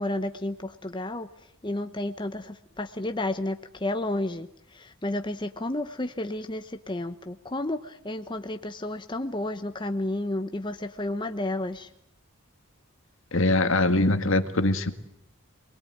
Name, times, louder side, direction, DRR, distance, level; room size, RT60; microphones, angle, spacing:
voice 1, 0.0-11.9, left 1 dB, 20° left, 7 dB, 1.0 m, -32 dB
voice 2, 13.3-14.9, left 2 dB, 70° left, 8 dB, 2.0 m, -22 dB
27.5 x 21.0 x 9.3 m, 0.72 s
head